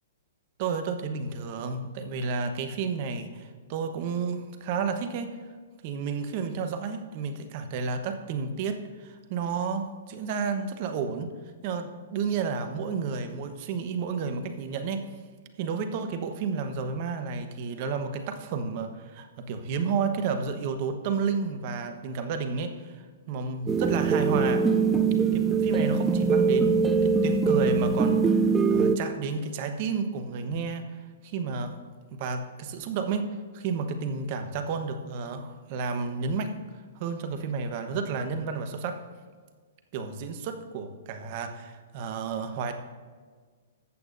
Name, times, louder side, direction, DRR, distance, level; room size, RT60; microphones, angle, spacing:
voice 1, 0.6-5.4 5.8-11.3 11.6-15.1 15.6-24.7 25.3-31.0 31.2-31.8 32.1-36.6 36.9-39.0 39.9-42.7, right 5 dB, 45° right, 7 dB, 1.0 m, -31 dB
sound 1, 23.7-29.0, right 5 dB, 15° right, 0.4 m, -23 dB
14.0 x 8.4 x 2.6 m, 1.5 s
hypercardioid pair, 135°, 0 cm